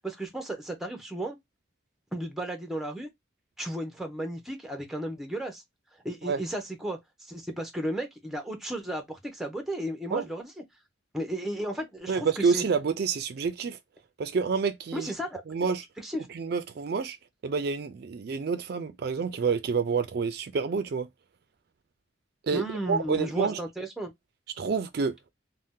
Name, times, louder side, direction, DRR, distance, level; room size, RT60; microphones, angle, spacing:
voice 1, 0.0-1.4 2.1-3.1 3.6-5.6 6.0-10.5 11.1-12.6 14.9-15.4 16.0-16.3 22.5-24.1, right 1 dB, ahead, 0.6 m, -34 dB
voice 2, 12.1-13.8 14.2-15.1 15.5-15.8 16.3-17.2 17.4-21.1 22.4-23.6 24.6-25.1, right 5 dB, 55° right, 0.4 m, -28 dB
2.7 x 2.1 x 3.5 m
head